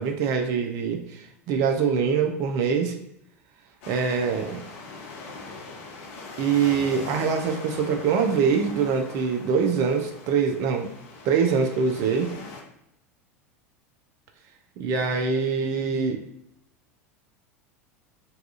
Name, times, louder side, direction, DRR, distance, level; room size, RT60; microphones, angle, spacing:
voice 1, 0.0-2.9 3.9-4.6 6.4-10.9 11.2-12.3 14.8-16.2, right 6 dB, 45° right, 4 dB, 0.4 m, -24 dB
sound 1, 3.8-12.6, left 3 dB, 55° left, 0.5 m, -41 dB
2.7 x 2.3 x 2.3 m, 0.79 s
figure-of-eight pair, 80°, 8 cm